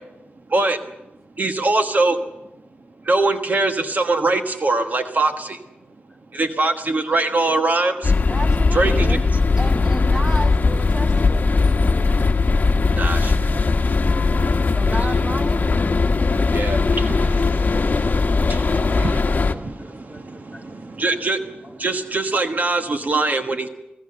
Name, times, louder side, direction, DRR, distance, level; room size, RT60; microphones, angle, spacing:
voice 1, 1.4-2.2 3.1-5.6 6.3-8.1 8.7-9.2 13.0-13.3 16.5-17.4 18.5-19.7 21.0-21.4 21.8-23.7, right 2 dB, 50° right, 6 dB, 1.3 m, -22 dB
sound 1, 8.0-19.5, left 3 dB, 45° left, 1.1 m, -19 dB
voice 2, 8.3-9.2 9.6-12.1 14.7-15.6, right 1 dB, 15° right, 9 dB, 0.8 m, -32 dB
voice 3, 19.8-20.8 21.1-21.2 21.6-21.8, left 1 dB, 5° left, 1 dB, 3.7 m, -49 dB
26.5 x 16.5 x 6.8 m, 0.95 s
wide cardioid pair, 130°, 4 cm